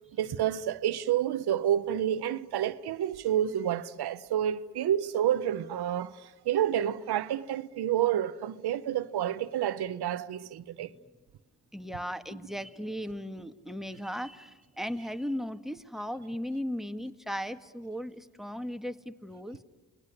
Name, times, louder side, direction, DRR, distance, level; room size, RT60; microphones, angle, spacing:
voice 1, 0.2-10.9, right 10 dB, 85° right, 0.8 m, -29 dB
voice 2, 11.7-19.6, equal, ahead, 1.7 m, -37 dB
28.5 x 20.5 x 9.7 m
supercardioid pair, 50°, 38 cm